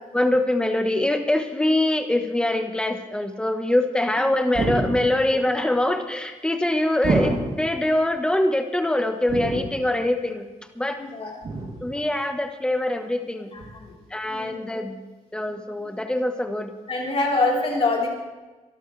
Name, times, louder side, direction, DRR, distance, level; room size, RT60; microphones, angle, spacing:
voice 1, 0.1-10.5 10.7-11.0 11.8-13.5 14.1-15.0 15.3-16.7, left 1 dB, 5° left, 5 dB, 1.2 m, -23 dB
sound 1, 4.5-5.4 7.0-7.8 9.3-10.0 11.4-12.0 13.6-13.7, right 3 dB, 50° right, 2.8 m, -27 dB
voice 2, 11.0-11.4 13.5-13.9 14.2-14.7 16.9-18.1, left 2 dB, 45° left, -3 dB, 4.0 m, -25 dB
25.0 x 12.0 x 3.3 m, 1.2 s
wide cardioid pair, 140°, 14 cm